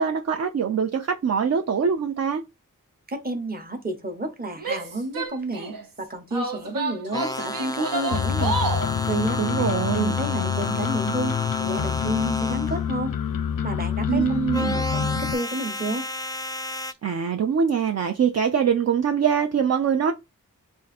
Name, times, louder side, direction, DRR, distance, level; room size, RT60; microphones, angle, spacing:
voice 1, 0.0-2.4 9.4-10.1 14.1-14.8 17.0-20.1, right 7 dB, 50° right, 0.4 m, -23 dB
voice 2, 3.1-8.6 9.0-13.1 13.6-16.1, right 2 dB, 30° right, 0.9 m, -30 dB
Female speech woman speaking / Yell, 4.6-5.8 6.3-8.9, right 3 dB, 85° right, 0.8 m, -30 dB
sound 1, 7.1-12.8 14.5-16.9, left 1 dB, 10° left, 0.3 m, -32 dB
distant bass, 8.1-15.3, left 8 dB, 90° left, 0.5 m, -27 dB
3.7 x 2.5 x 4.1 m
wide cardioid pair, 90°, 33 cm